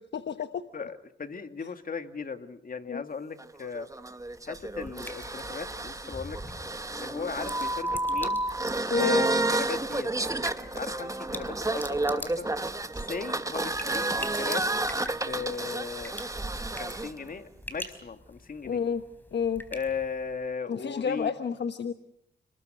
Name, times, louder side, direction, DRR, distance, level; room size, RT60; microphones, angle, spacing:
voice 1, 0.1-0.6 1.6-1.7 2.8-3.0 8.9-9.2 18.6-19.0 19.3-19.6 20.7-21.9, left 7 dB, 65° left, 8 dB, 1.3 m, -29 dB
voice 2, 0.7-3.9 4.5-6.4 7.0-8.4 9.0-12.5 13.0-14.7 15.0-16.2 16.8-18.8 19.7-21.3, left 5 dB, 50° left, 7 dB, 2.3 m, -37 dB
sound 1, 3.4-17.1, right 2 dB, 15° right, 1.4 m, -30 dB
sound 2, 4.1-20.5, left 1 dB, 10° left, 4.2 m, -46 dB
30.0 x 20.5 x 8.0 m, 0.76 s
cardioid pair, 80°, 19 cm